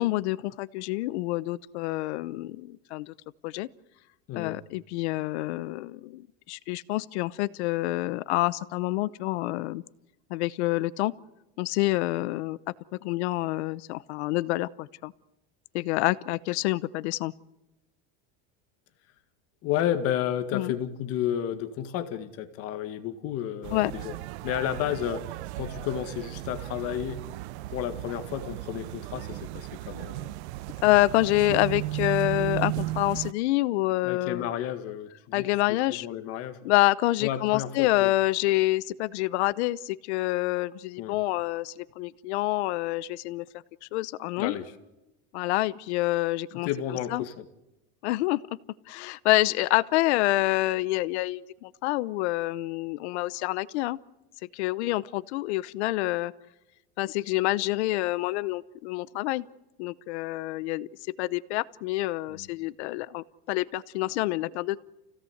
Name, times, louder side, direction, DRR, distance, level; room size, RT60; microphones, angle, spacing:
voice 1, 0.0-3.1 3.4-3.7 4.4-9.8 10.3-11.1 11.6-12.6 13.0-15.1 15.7-17.3 20.5-20.7 23.7-23.9 30.8-34.5 35.3-36.1 36.6-43.4 43.9-44.5 45.3-46.7 47.1-47.2 48.0-48.4 48.9-54.0 54.5-56.3 57.0-59.4 59.8-60.9 61.2-64.8, left 18 dB, 85° left, 0.9 m, -27 dB
voice 2, 4.3-4.6 19.6-24.2 24.4-27.2 27.7-30.4 34.0-36.6 37.2-38.1 41.0-41.2 44.4-44.7 46.5-47.5 62.3-62.5, left 10 dB, 45° left, 1.9 m, -32 dB
sound 1, 23.6-33.3, right 18 dB, 80° right, 0.8 m, -35 dB
29.0 x 17.0 x 8.0 m
cardioid pair, 165°, 33 cm